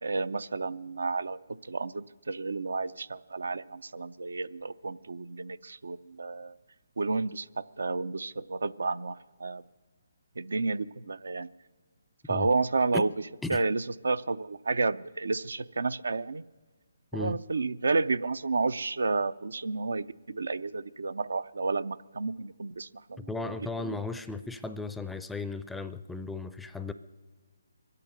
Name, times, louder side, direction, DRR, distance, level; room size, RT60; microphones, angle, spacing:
voice 1, 0.0-6.5 7.0-9.6 10.4-11.5 12.3-13.1 13.5-16.4 17.1-23.3 23.8-24.0, right 3 dB, 80° right, 16 dB, 0.5 m, -31 dB
voice 2, 23.2-26.9, left 3 dB, 5° left, 11 dB, 0.4 m, -36 dB
23.0 x 8.4 x 6.5 m, 1.4 s
hypercardioid pair, 150°, 0 cm